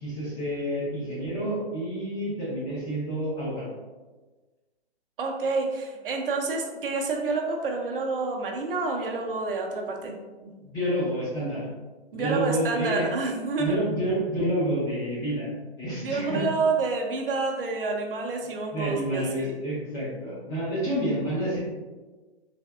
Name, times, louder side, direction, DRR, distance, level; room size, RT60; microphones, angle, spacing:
voice 1, 0.0-3.7 10.0-10.1 10.4-11.7 12.1-13.1 13.6-15.5 15.8-16.4 18.7-21.6, right 1 dB, 10° left, -8 dB, 0.5 m, -29 dB
voice 2, 5.2-10.1 12.1-13.8 16.0-19.5, right 3 dB, 55° right, 1 dB, 0.6 m, -28 dB
3.4 x 2.5 x 2.3 m, 1.3 s
figure-of-eight pair, 135°, 33 cm